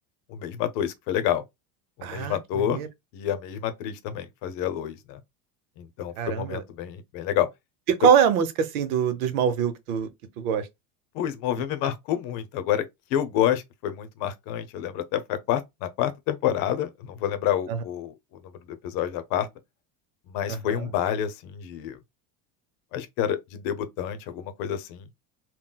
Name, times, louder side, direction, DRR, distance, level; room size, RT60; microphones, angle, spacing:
voice 1, 0.3-1.4 2.0-2.8 3.1-5.2 5.8-7.5 11.1-12.8 13.1-19.5 20.3-22.0 22.9-25.1, left 10 dB, 55° left, 0.7 m, -28 dB
voice 2, 2.0-2.4 2.7-2.9 6.2-6.6 7.9-10.1 10.4-10.7 17.7-17.8 20.5-20.9, right 7 dB, 85° right, 0.8 m, -23 dB
3.8 x 2.2 x 2.2 m
supercardioid pair, 140°, 41 cm